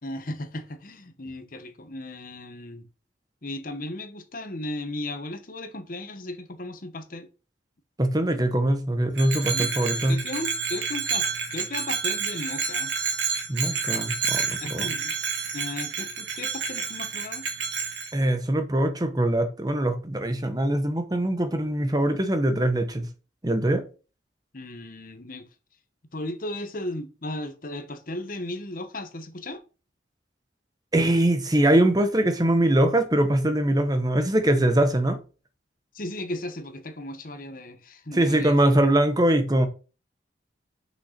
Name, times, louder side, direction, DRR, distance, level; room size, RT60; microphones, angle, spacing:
voice 1, 0.0-2.9 3.4-7.3 9.5-9.7 10.1-12.9 14.6-15.2 15.5-17.5 24.5-25.5 26.1-29.6 35.9-38.6, left 1 dB, 45° left, 1.1 m, -35 dB
voice 2, 8.0-10.2 13.5-14.9 18.1-23.1 23.4-23.8 30.9-35.2 38.1-39.7, right 1 dB, 20° right, 0.9 m, -22 dB
Bell, 9.1-18.1, right 6 dB, 80° right, 1.9 m, -29 dB
6.3 x 5.7 x 5.7 m
head